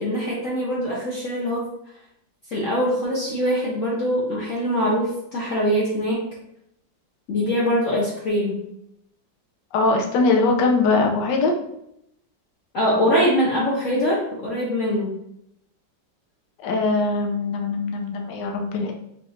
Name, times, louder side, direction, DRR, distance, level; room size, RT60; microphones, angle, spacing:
voice 1, 0.0-1.6 2.5-6.2 7.3-8.6 12.7-15.1, equal, 50° left, -5 dB, 1.1 m, -23 dB
voice 2, 9.7-11.5 16.6-18.9, left 3 dB, 70° left, 2 dB, 1.4 m, -21 dB
3.6 x 3.3 x 4.1 m, 0.77 s
omnidirectional pair, 2.1 m